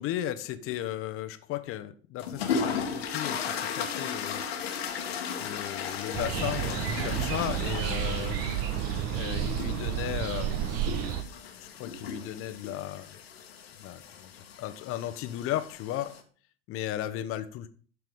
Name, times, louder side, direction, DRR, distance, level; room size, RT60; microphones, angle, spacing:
voice 1, 0.0-4.4 5.4-8.4 9.1-10.8 11.6-13.2 13.8-16.1 16.7-17.7, left 12 dB, 40° left, 1.1 m, -35 dB
sound 1, 2.2-16.2, left 6 dB, 65° left, 1.7 m, -36 dB
sound 2, 6.1-11.2, right 10 dB, 45° right, 1.3 m, -31 dB
13.0 x 4.7 x 5.4 m
figure-of-eight pair, 75°, 33 cm